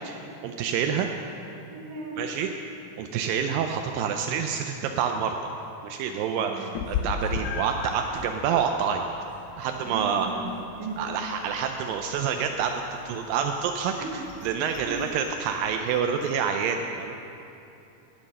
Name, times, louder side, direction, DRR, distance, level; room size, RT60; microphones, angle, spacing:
voice 1, 0.4-1.1 2.2-2.5 3.0-5.4 5.8-9.1 9.6-10.3 11.0-13.9 14.4-17.2, right 7 dB, 85° right, 4 dB, 2.0 m, -27 dB
voice 2, 1.7-2.2 6.4-6.7 9.9-10.5 10.8-11.0 13.9-14.1 14.8-14.9, right 4 dB, 50° right, -3 dB, 2.7 m, -37 dB
Meow, 6.7-16.4, left 6 dB, 80° left, 2.0 m, -38 dB
17.0 x 6.2 x 6.6 m, 2.8 s
omnidirectional pair, 4.5 m